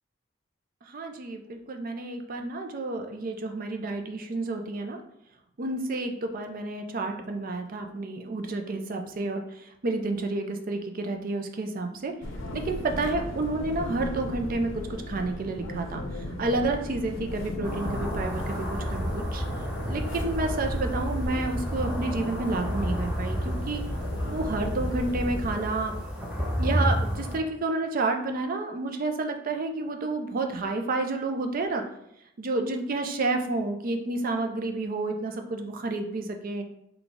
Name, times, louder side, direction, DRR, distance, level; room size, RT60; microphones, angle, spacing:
voice 1, 0.9-5.0 5.6-12.1 12.5-19.4 19.8-23.8 24.2-25.9 26.6-31.8 32.4-36.6, right 2 dB, 50° right, 5 dB, 0.4 m, -30 dB
sound 1, 12.2-25.6, left 1 dB, 85° left, 0.5 m, -37 dB
sound 2, 17.6-27.4, equal, 5° right, 0.8 m, -30 dB
3.6 x 2.2 x 3.9 m, 0.79 s
head